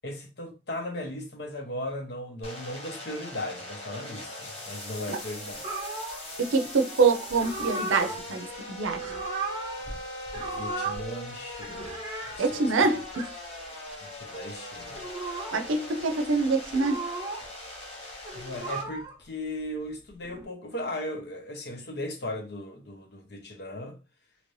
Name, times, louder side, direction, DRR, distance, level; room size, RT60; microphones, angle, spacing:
voice 1, 0.0-5.6 10.3-13.0 14.0-15.0 18.3-24.0, left 1 dB, 55° left, 0.8 m, -37 dB
sound 1, 2.4-18.8, left 1 dB, 30° left, 1.0 m, -40 dB
sound 2, 5.6-6.2 7.3-8.2 8.8-10.0 10.3-11.1 11.5-12.4 13.0-13.3 14.8-15.7 16.6-17.5 18.1-19.2 20.1-20.5, right 3 dB, 25° right, 0.7 m, -35 dB
voice 2, 6.4-9.1 12.4-13.3 15.5-17.0, right 4 dB, 90° right, 0.5 m, -25 dB
2.9 x 2.6 x 3.1 m
head